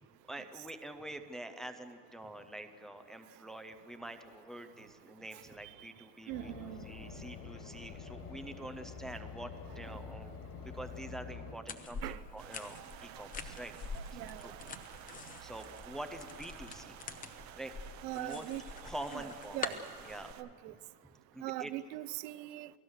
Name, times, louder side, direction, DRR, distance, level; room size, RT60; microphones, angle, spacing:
voice 1, 0.3-13.7 14.1-14.5 15.4-17.0 17.6-17.7 18.1-18.5 18.8-19.6 20.0-20.3 21.3-21.7, right 1 dB, ahead, 0.5 m, -46 dB
sound 1, 6.3-11.5, left 5 dB, 45° left, 2.8 m, -47 dB
voice 2, 6.3-6.9 9.7-9.8 12.0-12.2 14.1-14.5 18.0-18.6 19.1-19.3 19.5-19.8 20.4-20.7 21.4-22.7, right 17 dB, 75° right, 0.9 m, -41 dB
sound 2, 11.7-20.3, left 5 dB, 15° left, 0.8 m, -45 dB
sound 3, 12.4-20.4, right 11 dB, 35° right, 0.8 m, -52 dB
28.5 x 18.0 x 6.4 m
supercardioid pair, 150°, 50 cm